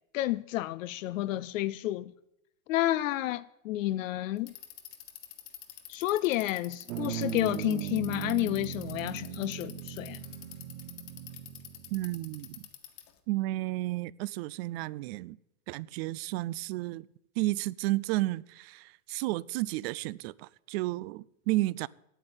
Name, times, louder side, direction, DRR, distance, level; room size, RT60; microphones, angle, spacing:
voice 1, 0.1-2.1 2.7-4.5 5.9-10.2, left 15 dB, 70° left, 0.6 m, -30 dB
Bicycle, 4.4-13.2, left 13 dB, 50° left, 1.7 m, -47 dB
sound 1, 6.9-12.6, right 11 dB, 70° right, 1.0 m, -39 dB
voice 2, 11.9-12.7 13.3-15.4 15.7-17.1 17.4-21.9, right 19 dB, 50° right, 0.4 m, -32 dB
9.0 x 8.8 x 7.8 m
hypercardioid pair, 115°, 41 cm